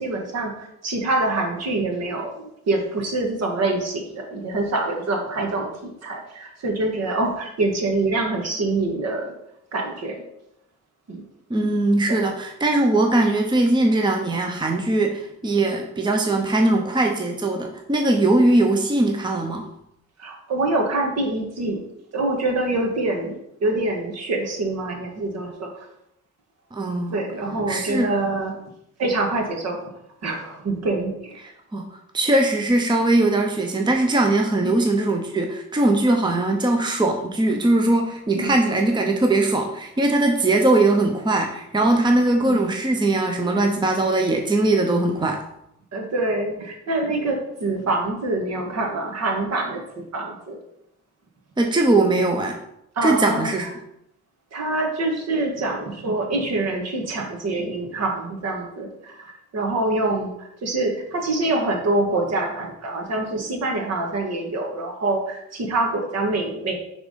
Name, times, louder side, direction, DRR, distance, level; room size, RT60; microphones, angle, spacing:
voice 1, 0.0-5.7 6.0-9.3 9.7-10.2 11.1-11.2 12.1-12.2 20.2-21.8 22.1-23.4 23.6-25.9 27.1-28.5 29.0-29.8 30.2-31.4 34.6-34.8 38.3-38.5 42.4-42.6 45.9-49.8 50.1-50.6 53.0-53.7 54.5-66.8, right 2 dB, 60° right, 1 dB, 1.7 m, -25 dB
voice 2, 11.5-19.6 26.7-27.2 27.7-28.1 31.7-31.9 32.1-45.4 51.6-52.6 53.0-53.7, right 2 dB, 15° right, 3 dB, 0.8 m, -20 dB
6.0 x 3.7 x 5.2 m, 0.79 s
cardioid pair, 90°, 30 cm